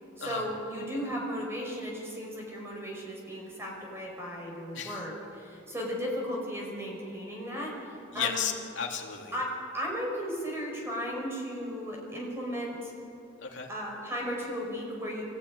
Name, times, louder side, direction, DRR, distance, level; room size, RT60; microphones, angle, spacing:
voice 1, 0.2-8.4 9.3-12.9 13.7-15.2, equal, 15° right, -2 dB, 5.2 m, -35 dB
voice 2, 8.1-9.4 13.4-13.7, left 7 dB, 75° left, 1 dB, 2.8 m, -34 dB
25.5 x 17.0 x 9.7 m, 2.7 s
head